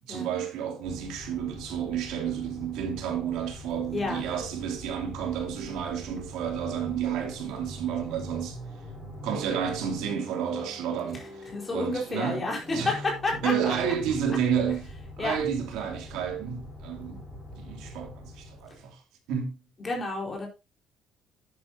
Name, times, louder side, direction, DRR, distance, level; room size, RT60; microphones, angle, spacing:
voice 1, 0.0-8.6 9.2-12.4 12.7-13.0 13.4-14.8 15.2-17.2 17.6-19.0 19.3-19.6, right 8 dB, 85° right, 2.9 m, -31 dB
sound 1, 0.8-18.9, left 1 dB, ahead, 5.6 m, -43 dB
voice 2, 11.5-13.7 15.2-15.4 19.8-20.5, left 2 dB, 20° left, 4.5 m, -30 dB
10.5 x 10.0 x 2.8 m
cardioid pair, 150°, 0 cm